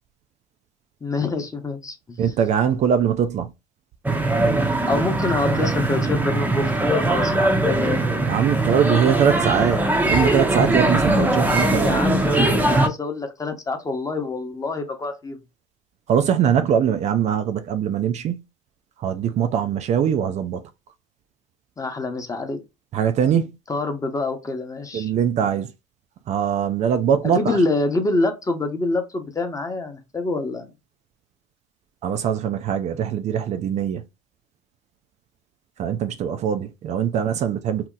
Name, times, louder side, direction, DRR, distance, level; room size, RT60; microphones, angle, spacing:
voice 1, 1.0-2.2 4.9-8.0 11.8-15.4 21.8-22.6 23.7-25.1 27.2-30.7, left 3 dB, 20° left, 0.9 m, -26 dB
voice 2, 2.2-3.5 8.2-12.0 16.1-18.4 19.0-20.6 22.9-23.5 24.9-25.7 26.3-27.6 32.0-34.0 35.8-37.9, right 8 dB, 45° right, 0.4 m, -22 dB
sound 1, 4.0-12.9, right 2 dB, 10° right, 0.7 m, -21 dB
2.8 x 2.0 x 3.7 m
hypercardioid pair, 80°, 17 cm